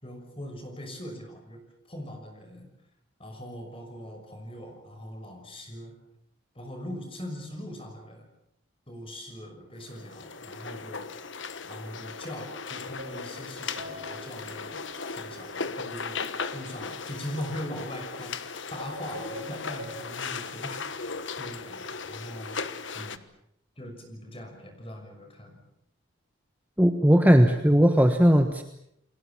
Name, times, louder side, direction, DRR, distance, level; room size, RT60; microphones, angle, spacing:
voice 1, 0.0-2.7 3.2-5.9 6.5-8.3 8.9-11.3 11.7-18.3 18.7-20.8 21.1-22.6 22.9-23.2 23.8-25.6, equal, 25° left, 4 dB, 6.0 m, -41 dB
sound 1, 9.8-23.2, left 5 dB, 65° left, 1.3 m, -37 dB
sound 2, 13.0-15.8 16.1-18.0 18.6-20.2 20.5-20.6, equal, 80° right, 4.3 m, -45 dB
voice 2, 26.8-28.6, equal, 10° right, 6 dB, 1.3 m, -18 dB
30.0 x 22.0 x 7.3 m, 0.76 s
head